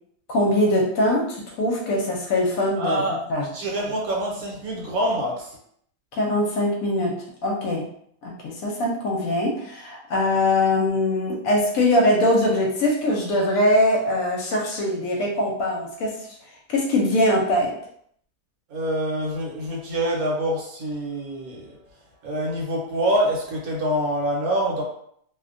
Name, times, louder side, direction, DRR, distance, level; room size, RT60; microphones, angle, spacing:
voice 1, 0.3-3.5 6.1-7.1 7.4-7.9 8.2-16.1 16.7-17.7, left 1 dB, 70° left, -1 dB, 1.0 m, -22 dB
voice 2, 2.7-3.2 3.5-5.6 18.7-21.8 22.2-24.8, right 1 dB, 75° right, -2 dB, 1.2 m, -26 dB
2.7 x 2.1 x 2.5 m, 0.67 s
omnidirectional pair, 1.6 m